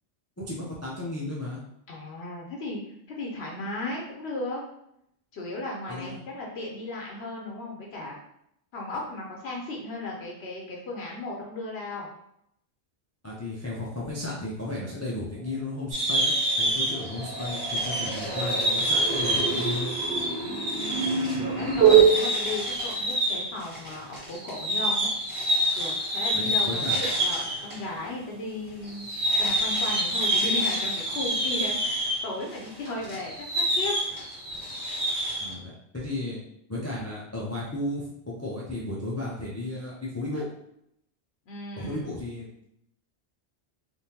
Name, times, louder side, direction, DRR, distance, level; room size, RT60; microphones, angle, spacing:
voice 1, 0.4-1.6 5.9-6.2 13.2-19.9 26.3-27.0 35.4-36.4 36.7-38.1 38.4-40.5 41.8-42.6, left 2 dB, 25° left, -5 dB, 0.4 m, -34 dB
voice 2, 1.9-2.8 3.1-4.6 5.3-8.1 8.7-12.1 20.4-25.1 25.8-33.9 41.5-42.1, left 2 dB, 75° left, -1 dB, 0.9 m, -36 dB
sound 1, 15.9-27.8 28.0-28.1 28.8-35.5, equal, 85° right, 1.7 m, -27 dB
sound 2, 16.1-16.7 16.9-22.1, right 8 dB, 70° right, 1.1 m, -25 dB
3.5 x 2.5 x 2.8 m, 0.76 s
omnidirectional pair, 1.1 m